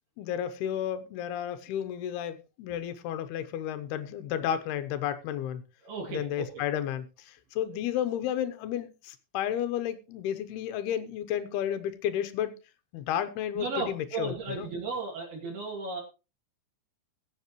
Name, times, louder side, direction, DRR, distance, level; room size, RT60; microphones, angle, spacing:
voice 1, 0.2-5.6 6.1-12.5 12.9-14.7, left 10 dB, 80° left, 2.9 m, -32 dB
voice 2, 5.8-6.6 13.6-16.0, right 4 dB, 75° right, 4.4 m, -35 dB
21.0 x 7.5 x 3.1 m
omnidirectional pair, 4.5 m